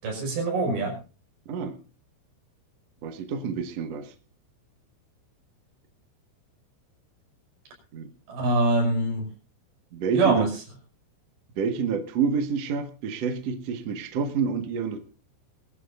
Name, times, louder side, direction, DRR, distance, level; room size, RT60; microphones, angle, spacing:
voice 1, 0.0-1.0 8.3-9.3 10.1-10.5, right 2 dB, 55° right, 2 dB, 7.4 m, -24 dB
voice 2, 1.4-1.8 3.0-4.1 7.9-8.1 9.9-10.5 11.6-15.0, right 6 dB, 70° right, 7 dB, 1.5 m, -28 dB
22.5 x 13.0 x 2.5 m, 0.35 s
omnidirectional pair, 5.5 m